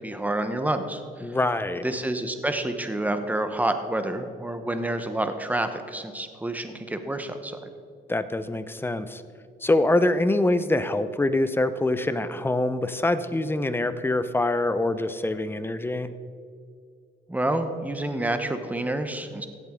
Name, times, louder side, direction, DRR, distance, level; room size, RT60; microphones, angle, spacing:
voice 1, 0.0-1.4 1.8-7.7 17.3-19.5, right 1 dB, 10° right, 7 dB, 1.0 m, -28 dB
voice 2, 1.2-1.9 8.1-9.2 9.6-16.1, left 2 dB, 10° left, 12 dB, 0.6 m, -24 dB
16.0 x 7.5 x 3.7 m, 2.2 s
cardioid pair, 90°, 20 cm